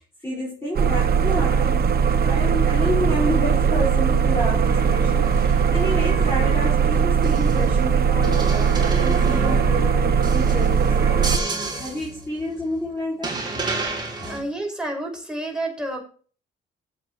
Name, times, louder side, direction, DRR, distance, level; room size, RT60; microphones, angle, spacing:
voice 1, 0.0-1.8 2.1-13.4 14.1-14.4, equal, 10° left, -7 dB, 5.4 m, -29 dB
sound 1, 0.7-11.4, right 7 dB, 50° right, 1.1 m, -19 dB
sound 2, 4.6-7.9 8.2-12.8 13.2-14.4, right 3 dB, 20° right, 3.5 m, -32 dB
voice 2, 14.3-16.0, right 1 dB, 5° right, 0 dB, 5.9 m, -29 dB
15.5 x 8.2 x 3.2 m, 0.41 s
cardioid pair, 90°, 20 cm